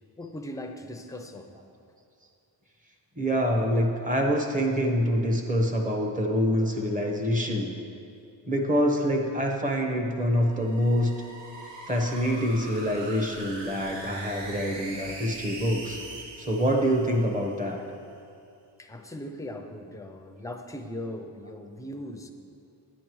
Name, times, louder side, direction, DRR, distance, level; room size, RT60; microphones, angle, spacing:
voice 1, 0.2-1.5 18.8-22.3, left 1 dB, 10° left, 4 dB, 0.5 m, -39 dB
voice 2, 3.2-7.7 8.5-11.1 11.9-16.0 16.4-17.8, equal, 20° right, 2 dB, 0.9 m, -26 dB
sound 1, 10.2-17.7, right 2 dB, 75° right, 1.2 m, -42 dB
10.5 x 8.4 x 3.1 m, 2.5 s
wide cardioid pair, 135°, 42 cm